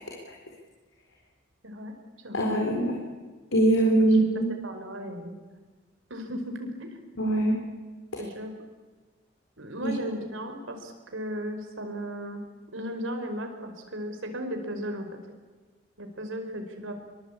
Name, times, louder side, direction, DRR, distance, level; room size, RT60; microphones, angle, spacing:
voice 1, 2.3-3.0 3.5-4.5 7.2-7.6 9.8-9.9, right 1 dB, 85° left, -1 dB, 4.2 m, -22 dB
voice 2, 4.6-5.4 6.1-7.0 8.2-8.5 9.6-12.4 12.7-15.1 16.0-16.9, equal, 85° right, 5 dB, 4.8 m, -36 dB
25.0 x 23.0 x 8.6 m, 1.3 s
head